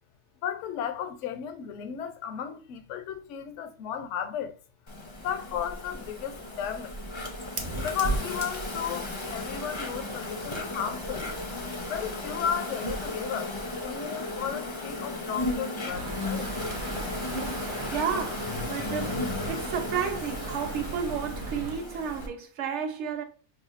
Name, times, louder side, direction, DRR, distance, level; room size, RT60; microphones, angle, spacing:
voice 1, 0.4-4.6 5.2-7.0 7.8-11.3 11.9-13.5 13.8-16.5, left 8 dB, 70° left, 0.9 m, -34 dB
Insect, 4.9-22.3, left 2 dB, 35° left, 0.5 m, -35 dB
Fire, 5.9-11.8, right 2 dB, 40° right, 0.4 m, -38 dB
sound 1, 15.9-21.8, right 4 dB, 90° right, 1.1 m, -39 dB
voice 2, 17.9-23.2, right 7 dB, 65° right, 0.9 m, -32 dB
5.7 x 2.3 x 2.4 m
omnidirectional pair, 1.4 m